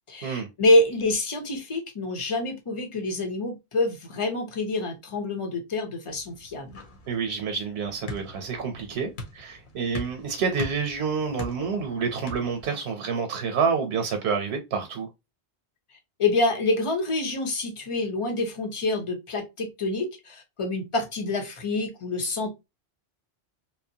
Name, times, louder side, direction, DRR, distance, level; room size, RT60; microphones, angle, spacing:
voice 1, 0.1-6.8 16.2-22.5, left 2 dB, 35° left, 0.7 m, -26 dB
sound 1, 6.1-12.7, left 2 dB, 55° left, 0.9 m, -42 dB
voice 2, 7.1-15.1, right 5 dB, 90° right, 0.9 m, -28 dB
2.9 x 2.1 x 2.7 m
omnidirectional pair, 1.1 m